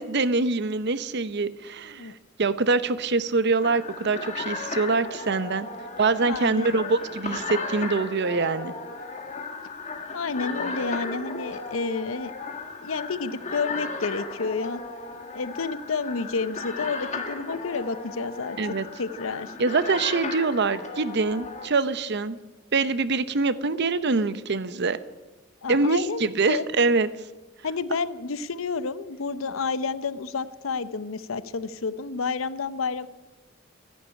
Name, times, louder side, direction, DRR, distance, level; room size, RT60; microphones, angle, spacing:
voice 1, 0.0-2.1 2.4-5.7 6.0-8.7 18.6-18.8 19.6-22.4 22.7-25.0 25.7-27.1, right 3 dB, 60° right, 14 dB, 0.8 m, -24 dB
sound 1, 3.6-21.7, left 3 dB, 35° left, 1.9 m, -35 dB
voice 2, 6.3-6.7 10.1-12.3 12.8-14.8 15.3-18.6 19.0-19.5 25.6-26.6 27.6-33.1, left 4 dB, 85° left, 15 dB, 0.7 m, -30 dB
13.5 x 11.0 x 9.7 m, 1.2 s
head